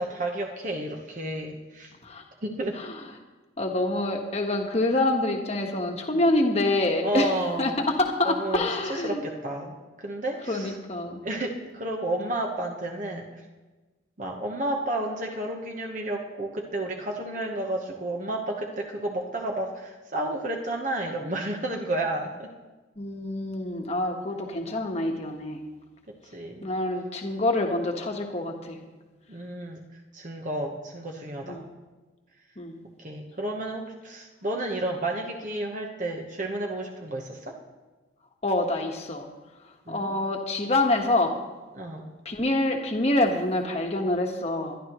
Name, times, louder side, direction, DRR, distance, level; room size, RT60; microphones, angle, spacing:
voice 1, 0.0-1.9 2.4-2.8 4.0-4.1 7.0-7.8 8.2-10.7 11.2-13.4 14.2-22.5 26.1-26.7 29.3-29.9 30.1-31.6 33.0-37.6 39.9-40.2 41.7-42.1, right 1 dB, 40° right, 0 dB, 1.1 m, -31 dB
voice 2, 3.6-7.3 7.6-7.7 8.0-9.2 10.5-11.3 23.0-25.6 26.6-28.8 31.5-31.6 32.6-32.8 38.4-39.3 39.9-41.4 42.2-44.8, left 2 dB, 35° left, 3 dB, 1.3 m, -26 dB
22.0 x 11.5 x 3.0 m, 1.2 s
head